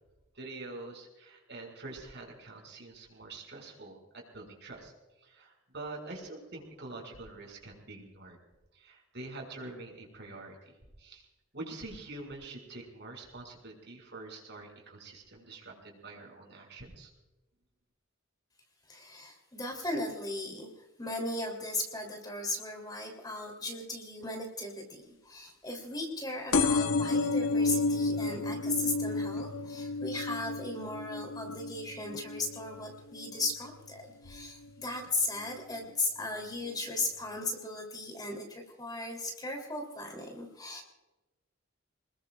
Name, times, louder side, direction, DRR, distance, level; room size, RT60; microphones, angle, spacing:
voice 1, 0.3-4.9 5.2-8.4 8.7-11.3 11.5-17.1, right 2 dB, 55° right, 0 dB, 5.8 m, -45 dB
voice 2, 18.9-20.7 21.0-40.8, left 2 dB, 20° left, 2 dB, 3.2 m, -37 dB
sound 1, 26.5-33.8 34.2-34.7 35.6-35.7 35.9-36.0 36.2-36.3, left 3 dB, 85° left, 1.0 m, -31 dB
28.0 x 21.0 x 2.4 m, 1.1 s
head